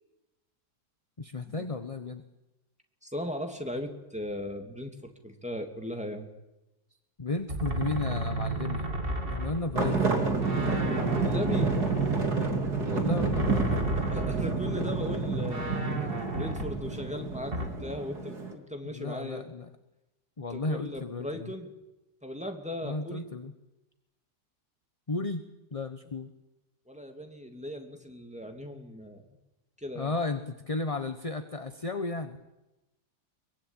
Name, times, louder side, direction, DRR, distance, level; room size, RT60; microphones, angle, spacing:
voice 1, 1.2-2.2 7.2-8.9 9.3-10.2 12.9-13.9 18.8-19.7 20.4-21.5 22.8-23.5 25.1-25.4 25.7-26.3 29.9-32.4, left 3 dB, 25° left, 9 dB, 1.0 m, -34 dB
voice 2, 3.0-6.3 11.1-11.8 14.1-15.9 16.3-19.4 20.5-21.7 22.2-23.3 26.9-29.2 29.8-30.1, equal, 5° right, 4 dB, 2.6 m, -37 dB
sound 1, 7.5-10.1 10.4-14.7 15.0-15.1 15.5-17.7, right 1 dB, 30° right, 3.2 m, -33 dB
sound 2, 9.8-18.5, right 4 dB, 65° right, 3.5 m, -29 dB
23.5 x 22.5 x 9.0 m, 0.96 s
omnidirectional pair, 1.8 m